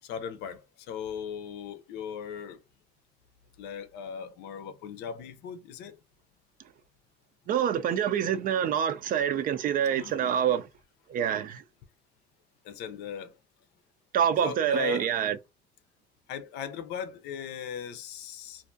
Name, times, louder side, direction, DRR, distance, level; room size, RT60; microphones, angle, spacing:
voice 1, 0.0-0.6 0.9-2.6 3.6-6.0 10.0-10.3 12.6-13.4 14.4-15.2 16.3-18.7, left 7 dB, 85° left, 0.5 m, -38 dB
voice 2, 7.5-10.6 11.1-11.6 14.1-15.4, right 9 dB, 55° right, 0.4 m, -26 dB
2.5 x 2.3 x 2.5 m
cardioid pair, 110°, 17 cm